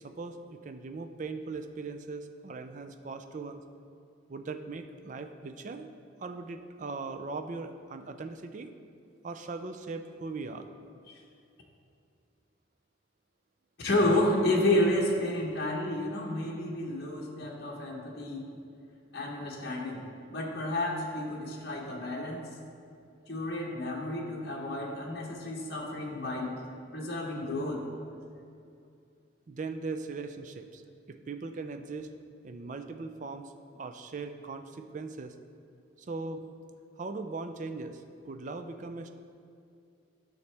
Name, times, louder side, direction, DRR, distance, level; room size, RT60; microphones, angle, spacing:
voice 1, 0.0-3.6 4.3-5.9 6.2-8.7 9.2-10.7 29.5-30.8 31.1-32.1 32.4-35.3 36.0-36.4 37.0-39.1, right 3 dB, 40° right, 8 dB, 0.4 m, -39 dB
voice 2, 13.8-18.5 19.1-22.5 23.3-26.6 26.9-27.8, left 1 dB, 55° left, -2 dB, 1.0 m, -30 dB
9.6 x 6.5 x 3.3 m, 2.5 s
head